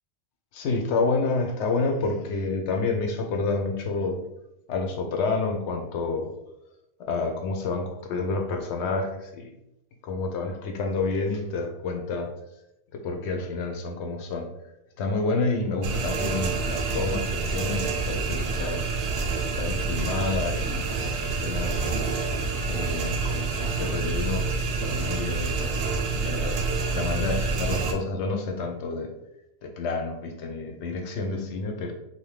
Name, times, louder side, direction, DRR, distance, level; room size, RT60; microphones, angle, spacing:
voice 1, 0.5-4.2 4.7-6.3 7.0-9.5 10.0-12.3 12.9-14.5 15.0-18.9 19.6-21.9 22.7-25.8 26.1-26.6 26.9-29.1 29.6-31.9, left 3 dB, 75° left, 4 dB, 0.9 m, -29 dB
sound 1, 15.8-27.9, right 4 dB, 75° right, 0.8 m, -27 dB
2.7 x 2.2 x 3.2 m, 0.86 s
omnidirectional pair, 1.2 m